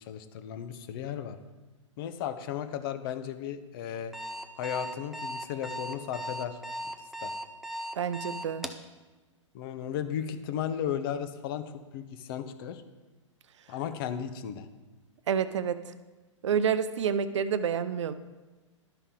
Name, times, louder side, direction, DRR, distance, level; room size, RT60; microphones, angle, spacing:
voice 1, 0.0-1.4 2.0-4.1 4.6-6.6 7.0-7.3 9.5-12.8 13.7-14.7, left 9 dB, 45° left, 10 dB, 0.8 m, -35 dB
Alarm, 3.9-8.8, equal, ahead, 0.4 m, -37 dB
voice 2, 7.9-8.7 15.3-15.8 16.4-18.1, right 7 dB, 65° right, 13 dB, 0.6 m, -28 dB
12.0 x 5.5 x 3.7 m, 1.2 s
figure-of-eight pair, 110°, 16 cm